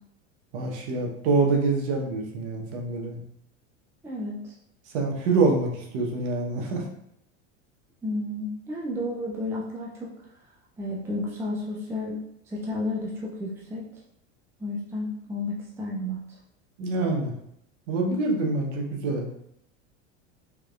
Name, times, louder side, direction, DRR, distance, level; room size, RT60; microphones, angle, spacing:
voice 1, 0.5-3.2 4.9-6.8 16.8-17.3 17.9-19.3, right 3 dB, 75° right, 1 dB, 1.0 m, -25 dB
voice 2, 4.0-4.5 8.0-10.1 10.8-12.2 12.5-13.8 14.6-16.2, left 1 dB, 5° right, -4 dB, 0.4 m, -32 dB
3.5 x 3.1 x 2.3 m, 0.75 s
supercardioid pair, 115°, 36 cm